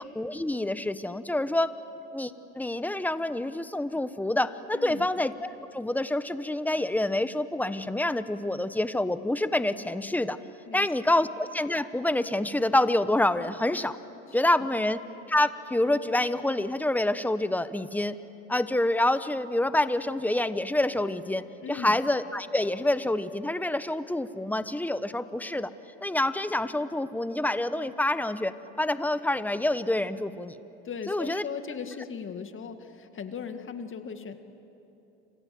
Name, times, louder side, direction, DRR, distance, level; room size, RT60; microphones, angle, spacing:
voice 1, 0.0-1.7 2.1-10.4 10.7-14.0 14.3-15.0 15.3-18.2 18.5-21.4 21.7-25.7 26.0-30.6 31.1-31.4, left 1 dB, 5° left, 12 dB, 1.2 m, -27 dB
voice 2, 4.7-5.1 10.7-10.9 14.3-14.8 21.6-22.0 30.8-34.4, left 6 dB, 35° left, 7 dB, 2.1 m, -38 dB
29.0 x 26.5 x 7.8 m, 2.9 s
supercardioid pair, 90°, 34 cm